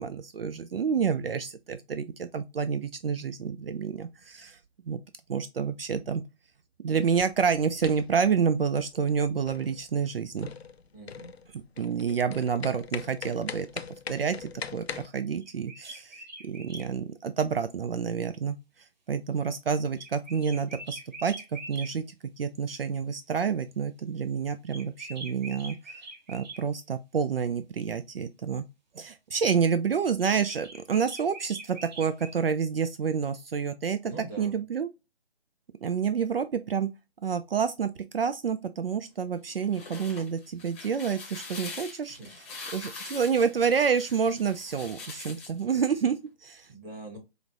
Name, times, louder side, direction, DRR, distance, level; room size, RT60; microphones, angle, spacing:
voice 1, 0.0-4.6 4.9-5.0 5.3-6.2 6.8-10.5 11.5-13.7 14.1-18.6 19.1-22.0 22.4-26.0 26.3-28.6 29.0-34.1 34.4-34.9 35.8-36.9 37.2-42.2 42.7-46.7, right 6 dB, 70° right, 0.4 m, -28 dB
sound 1, 7.0-15.1, left 6 dB, 90° left, 0.5 m, -41 dB
voice 2, 10.9-11.3 34.0-34.6 42.1-42.3 46.7-47.2, right 2 dB, 15° right, 1.2 m, -42 dB
sound 2, 15.4-16.9 20.0-21.9 24.7-26.6 30.2-32.4, right 2 dB, 45° right, 1.2 m, -43 dB
sound 3, 39.5-45.6, left 3 dB, 15° left, 0.8 m, -43 dB
5.0 x 2.0 x 2.5 m
figure-of-eight pair, 145°, 30 cm